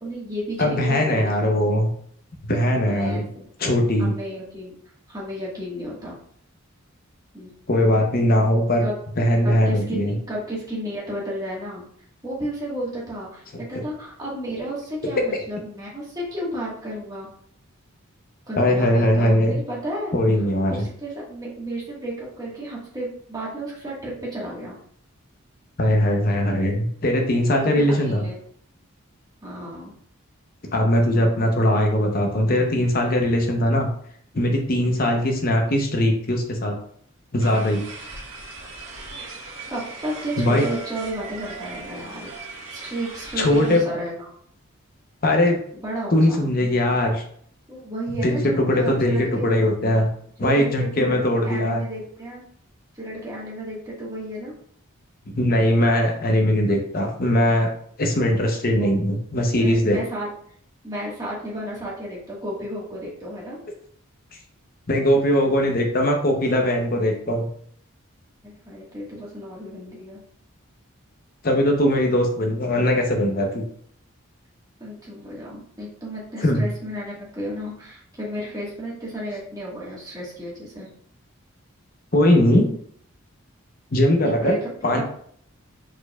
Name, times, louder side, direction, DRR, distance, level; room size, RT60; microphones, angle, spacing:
voice 1, 0.0-1.8 2.9-3.5 4.0-4.8 5.1-6.1 7.3-7.5 8.8-9.0 9.4-11.8 12.2-13.4 13.7-17.3 18.5-20.1 20.7-24.8 27.6-28.4 29.4-29.9 39.7-42.3 42.7-44.3 45.7-46.4 47.7-49.5 50.4-52.4 52.9-54.5 58.8-58.9 59.6-60.3 60.8-63.6 68.4-70.2 74.8-80.9 84.2-85.0, equal, 15° right, -6 dB, 1.4 m, -32 dB
voice 2, 0.6-1.9 2.5-3.3 3.6-4.1 7.7-8.8 9.2-10.1 18.6-19.6 20.1-20.9 25.8-28.3 30.7-33.9 34.3-36.8 37.3-37.8 40.4-40.6 43.4-43.8 45.2-45.6 46.1-47.2 48.2-50.1 50.4-51.8 55.3-57.7 58.0-60.0 64.9-67.5 71.4-73.6 76.4-76.6 82.1-82.7 83.9-84.5 84.8-85.0, left 1 dB, 40° left, 2 dB, 0.7 m, -20 dB
sound 1, 37.4-43.8, right 3 dB, 60° right, 1.3 m, -38 dB
4.6 x 4.4 x 2.3 m, 0.63 s
head